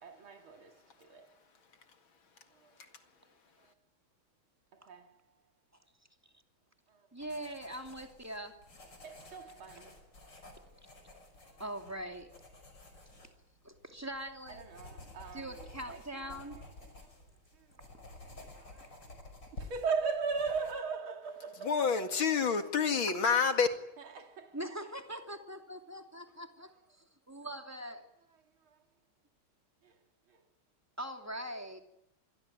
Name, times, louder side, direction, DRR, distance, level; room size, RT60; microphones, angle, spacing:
voice 1, 0.0-1.4 2.5-2.7 3.6-3.7 4.7-5.2 6.9-7.3 9.0-10.1 10.7-10.8 11.1-11.2 11.4-11.7 14.5-17.2 17.5-18.2 18.6-19.0 19.5-22.5 24.0-24.7 26.3-26.7 27.9-28.0 28.3-28.8 29.8-29.9 30.3-30.4 31.4-31.5, right 5 dB, 85° right, 3.2 m, -40 dB
voice 2, 7.1-8.6 11.6-12.3 13.6-14.6 15.3-16.6 23.1-23.2 24.5-28.1 31.0-31.8, right 1 dB, 5° right, 2.8 m, -42 dB
sound 1, 7.2-20.7, left 2 dB, 60° left, 6.1 m, -53 dB
voice 3, 21.6-23.7, left 6 dB, 75° left, 2.9 m, -28 dB
26.5 x 21.5 x 9.4 m
omnidirectional pair, 2.2 m